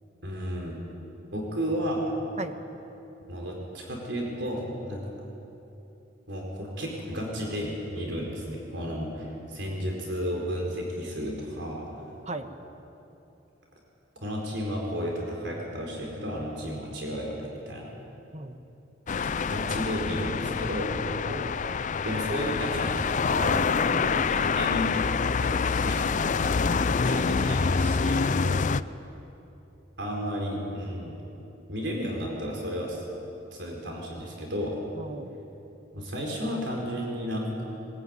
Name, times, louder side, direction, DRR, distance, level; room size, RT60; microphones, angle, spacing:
voice 1, 0.2-0.8 1.3-2.1 3.3-5.0 6.3-12.0 14.2-17.9 19.2-21.0 22.0-23.7 24.0-25.0 25.4-26.6 26.9-28.3 30.0-31.2 31.7-33.0 33.5-34.8 35.9-37.6, equal, 70° right, -1 dB, 4.4 m, -33 dB
sound 1, 19.1-28.8, left 5 dB, 45° left, 0.5 m, -26 dB
voice 2, 21.3-21.8 23.9-24.1 28.4-28.7 35.0-35.3, right 2 dB, 40° right, 8 dB, 1.3 m, -37 dB
21.0 x 20.5 x 9.7 m, 3.0 s
head